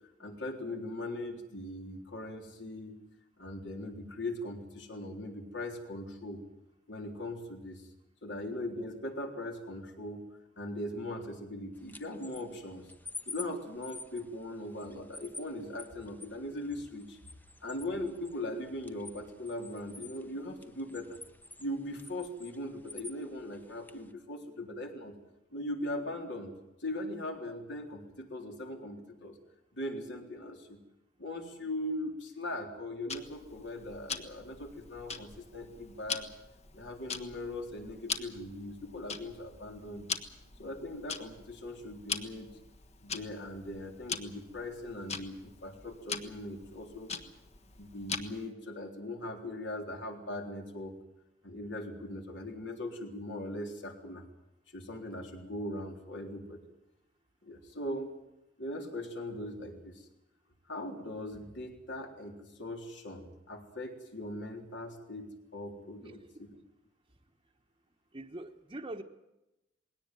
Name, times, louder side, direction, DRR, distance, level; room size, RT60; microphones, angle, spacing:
voice 1, 0.2-3.0 3.4-6.4 6.9-7.9 8.2-10.3 10.6-12.9 13.3-17.2 17.6-21.2 21.6-25.1 25.5-26.5 26.8-29.4 29.7-30.8 31.2-36.3 36.7-40.1 40.6-42.6 43.0-47.1 47.8-51.0 51.4-54.2 54.7-56.6 57.4-58.1 58.6-60.1 60.7-66.6, left 1 dB, 70° left, 3 dB, 3.8 m, -40 dB
sound 1, 11.7-24.1, left 3 dB, 10° left, 0.9 m, -50 dB
Tick-tock, 33.1-48.5, left 5 dB, 35° left, 1.4 m, -42 dB
voice 2, 66.0-66.4 68.1-69.0, right 1 dB, 25° right, 2 dB, 1.1 m, -43 dB
20.5 x 18.0 x 9.2 m, 0.94 s
head